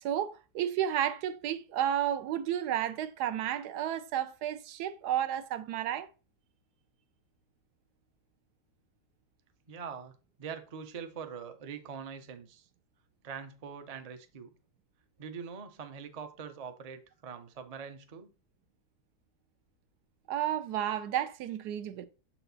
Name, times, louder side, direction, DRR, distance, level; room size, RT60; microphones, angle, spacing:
voice 1, 0.0-6.1 20.3-22.1, right 10 dB, 85° right, 1.2 m, -32 dB
voice 2, 9.7-10.1 10.4-12.7 13.2-14.5 15.2-18.3, right 6 dB, 50° right, 0.4 m, -43 dB
6.8 x 4.4 x 4.0 m
omnidirectional pair, 1.7 m